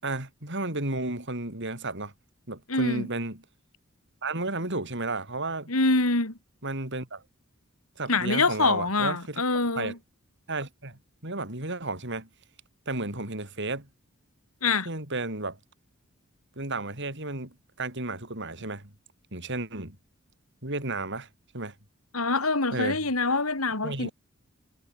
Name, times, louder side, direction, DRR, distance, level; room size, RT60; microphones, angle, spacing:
voice 1, 0.0-2.1 2.5-3.4 4.2-5.7 6.6-7.2 8.0-9.4 9.7-10.0 10.5-12.3 12.9-13.9 14.8-15.6 16.6-18.9 19.3-20.0 20.6-21.3 21.5-21.7 22.7-23.0 23.8-24.1, right 2 dB, 55° right, 6.3 m, -33 dB
voice 2, 2.7-3.1 5.7-6.3 8.1-9.9 14.6-14.9 22.1-24.1, left 3 dB, 85° left, 4.1 m, -25 dB
head